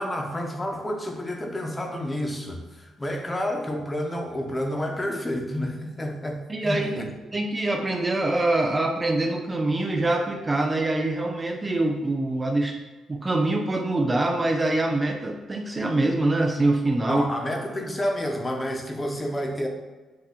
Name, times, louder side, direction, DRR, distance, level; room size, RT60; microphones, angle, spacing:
voice 1, 0.0-7.1 17.1-19.7, equal, 20° left, 2 dB, 1.2 m, -29 dB
voice 2, 6.5-12.8 13.1-17.2, right 2 dB, 20° right, 3 dB, 0.7 m, -24 dB
8.3 x 3.0 x 6.2 m, 1.2 s
cardioid pair, 90°, 0 cm